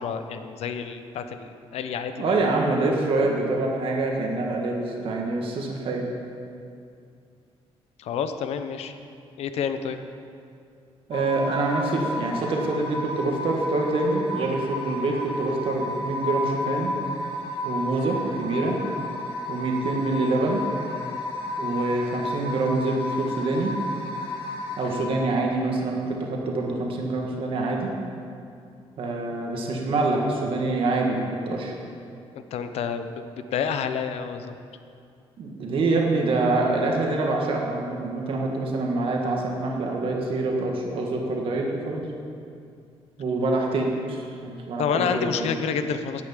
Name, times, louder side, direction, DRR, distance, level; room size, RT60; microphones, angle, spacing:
voice 1, 0.0-2.3 8.0-8.9 9.4-10.0 32.3-34.5 44.8-46.2, left 7 dB, 80° left, 9 dB, 0.9 m, -29 dB
voice 2, 2.2-6.1 11.1-17.0 17.6-18.8 19.5-20.6 21.6-23.7 24.8-28.0 29.0-31.7 35.4-42.0 43.2-45.5, right 2 dB, 55° right, 0 dB, 1.8 m, -26 dB
sound 1, 11.1-25.0, left 1 dB, 50° left, 2.3 m, -32 dB
11.0 x 8.4 x 8.4 m, 2.4 s
cardioid pair, 150°, 11 cm